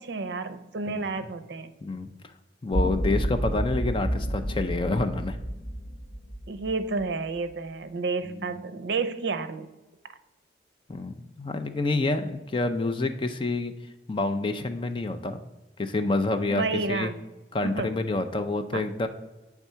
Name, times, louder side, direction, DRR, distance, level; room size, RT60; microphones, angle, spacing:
voice 1, 0.0-1.7 6.5-9.7 16.5-17.1 17.6-17.9 18.7-18.8, right 4 dB, 75° right, 10 dB, 0.5 m, -30 dB
voice 2, 2.6-5.4 8.2-8.4 10.9-13.7 14.1-15.4 15.8-17.1 17.5-19.1, left 2 dB, 30° left, 7 dB, 0.4 m, -28 dB
sound 1, 2.7-7.0, equal, 45° left, 1.9 m, -30 dB
8.4 x 3.5 x 5.5 m, 1.1 s
head